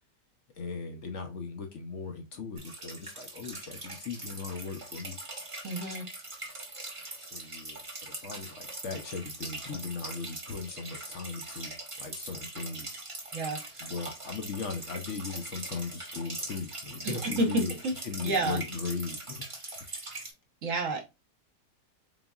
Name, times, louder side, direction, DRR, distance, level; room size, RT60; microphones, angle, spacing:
voice 1, 0.5-5.2 7.2-12.9 13.8-19.4 19.8-19.9, left 4 dB, 60° left, 5 dB, 0.8 m, -38 dB
sound 1, 2.6-20.3, right 2 dB, 25° right, 0.8 m, -42 dB
voice 2, 5.6-6.1 13.3-13.9 17.2-17.9 18.2-18.6 20.6-21.0, right 2 dB, 55° right, 3 dB, 1.1 m, -30 dB
3.9 x 3.9 x 2.3 m, 0.24 s
omnidirectional pair, 1.8 m